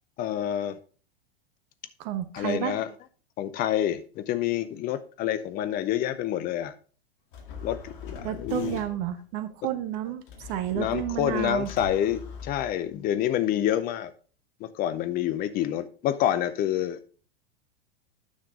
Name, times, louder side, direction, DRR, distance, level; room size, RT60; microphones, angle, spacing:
voice 1, 0.2-0.8 2.3-2.9 3.4-6.7 7.6-8.8 10.7-14.1 14.6-17.0, left 11 dB, 30° left, 12 dB, 0.7 m, -28 dB
voice 2, 2.0-2.8 8.2-11.7, right 11 dB, 40° right, 11 dB, 1.1 m, -31 dB
sound 1, 7.3-9.1 10.3-13.1, left 4 dB, 55° left, 1.9 m, -42 dB
9.5 x 5.9 x 3.6 m, 0.40 s
figure-of-eight pair, 95°, 30 cm